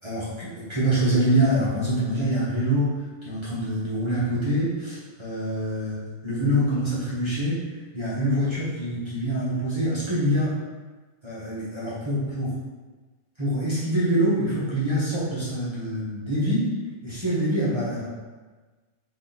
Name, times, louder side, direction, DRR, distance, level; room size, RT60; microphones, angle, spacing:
voice 1, 0.0-7.6 7.9-10.5 11.2-12.5 13.4-16.7 17.0-18.1, right 1 dB, 25° right, -10 dB, 0.6 m, -25 dB
3.8 x 3.3 x 4.1 m, 1.3 s
omnidirectional pair, 2.4 m